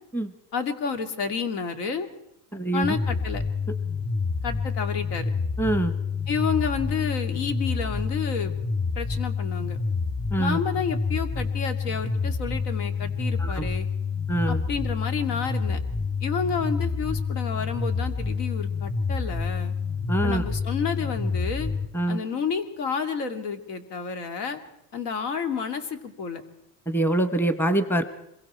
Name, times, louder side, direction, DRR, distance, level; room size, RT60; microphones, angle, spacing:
voice 1, 0.5-2.1 2.7-3.4 4.4-5.3 6.3-8.5 8.9-9.8 10.4-13.9 14.5-15.8 16.2-19.7 20.2-21.7 22.1-24.6 24.9-26.4, left 6 dB, 85° left, 7 dB, 2.8 m, -30 dB
voice 2, 2.5-2.9 5.6-5.9 10.3-10.6 13.4-13.7 14.3-14.6 20.1-20.4 21.9-22.2 26.9-28.1, right 1 dB, 5° left, 11 dB, 1.0 m, -24 dB
sound 1, 2.8-21.8, left 4 dB, 25° left, 2.9 m, -28 dB
26.0 x 22.5 x 4.4 m, 0.79 s
supercardioid pair, 135°, 46 cm